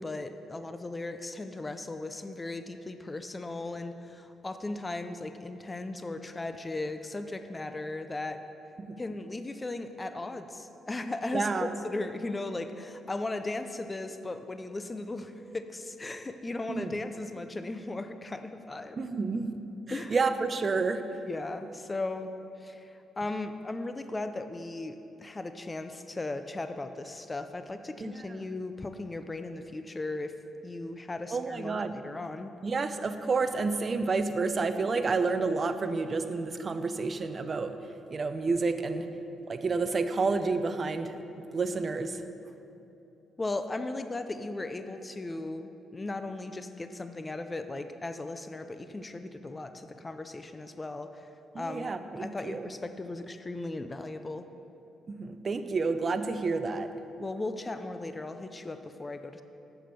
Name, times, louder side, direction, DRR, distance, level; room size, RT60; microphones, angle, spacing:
voice 1, 0.0-8.4 9.0-19.0 19.9-20.2 21.3-22.3 22.6-30.3 30.6-32.5 43.4-51.3 51.6-54.5 57.2-59.4, left 2 dB, 20° left, 9 dB, 0.5 m, -37 dB
voice 2, 11.3-11.7 16.7-16.9 19.0-19.5 19.9-21.0 28.0-28.4 31.3-31.9 32.6-37.7 38.1-39.1 39.5-41.2 41.5-42.2 51.5-52.6 55.1-56.9, right 4 dB, 35° right, 9 dB, 0.6 m, -30 dB
7.4 x 6.9 x 6.8 m, 2.9 s
cardioid pair, 90°, 0 cm